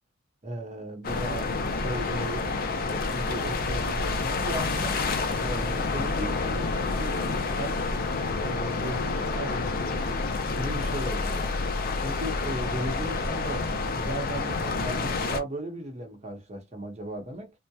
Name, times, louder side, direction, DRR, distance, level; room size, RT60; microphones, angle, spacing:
voice 1, 0.4-1.5 1.8-5.0 5.4-7.9 8.4-10.0 10.6-11.5 12.0-17.5, right 1 dB, 35° right, 0.8 m, -36 dB
sound 1, 1.0-15.4, left 3 dB, 45° left, 0.5 m, -29 dB
2.7 x 2.1 x 2.3 m
head